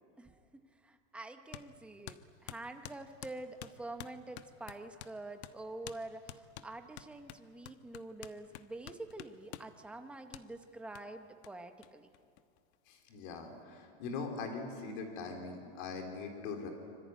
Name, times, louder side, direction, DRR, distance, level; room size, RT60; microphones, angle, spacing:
voice 1, 0.2-12.1, right 2 dB, 5° right, 6 dB, 0.8 m, -47 dB
sound 1, 1.5-1.7 2.1-5.2 5.4-5.6 5.9-6.0 6.3-9.7 10.3-10.5 11.0-11.1 11.4-11.5 11.8-11.9 12.1-12.9, left 12 dB, 75° left, 1.2 m, -49 dB
voice 2, 12.9-16.7, left 4 dB, 45° left, 4 dB, 4.0 m, -41 dB
25.5 x 24.5 x 9.3 m, 2.4 s
supercardioid pair, 180°, 34 cm